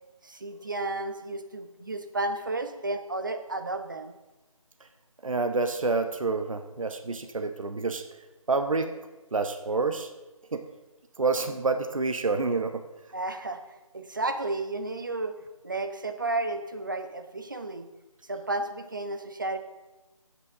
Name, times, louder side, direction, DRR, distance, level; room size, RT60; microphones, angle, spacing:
voice 1, 0.2-4.1 13.1-13.6 13.9-15.3 15.6-17.9 18.3-19.6, right 2 dB, 35° right, 8 dB, 0.8 m, -32 dB
voice 2, 5.2-8.0 8.5-8.9 9.3-10.1 10.5-10.6 11.2-12.8, right 3 dB, 65° right, 8 dB, 0.9 m, -28 dB
15.0 x 8.4 x 3.7 m, 1.1 s
figure-of-eight pair, 170°, 18 cm